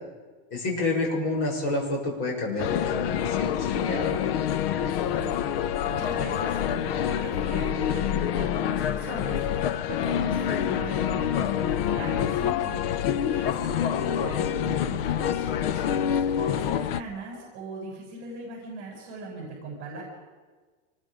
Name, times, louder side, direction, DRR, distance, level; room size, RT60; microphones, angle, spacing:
voice 1, 0.5-4.2, left 2 dB, 35° left, -1 dB, 6.9 m, -29 dB
sound 1, 2.6-17.0, left 9 dB, 55° left, 0.9 m, -27 dB
voice 2, 4.8-20.0, right 2 dB, 30° right, -2 dB, 7.4 m, -39 dB
26.0 x 21.5 x 5.1 m, 1.4 s
supercardioid pair, 180°, 36 cm